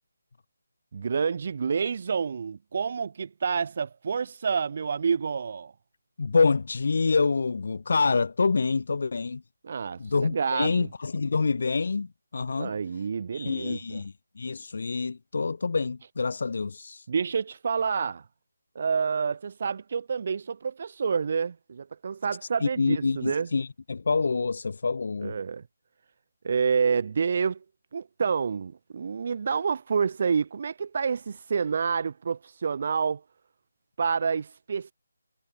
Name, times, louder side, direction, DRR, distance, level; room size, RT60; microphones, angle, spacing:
voice 1, 0.9-5.7 9.6-10.9 12.6-14.0 17.1-18.2 18.7-23.5 25.2-25.6 26.4-27.6 27.9-33.2 34.0-34.9, right 6 dB, 40° right, 0.6 m, -28 dB
voice 2, 6.2-9.4 10.0-12.7 13.3-17.1 22.6-25.3, left 4 dB, 55° left, 0.6 m, -27 dB
hypercardioid pair, 170°, 0 cm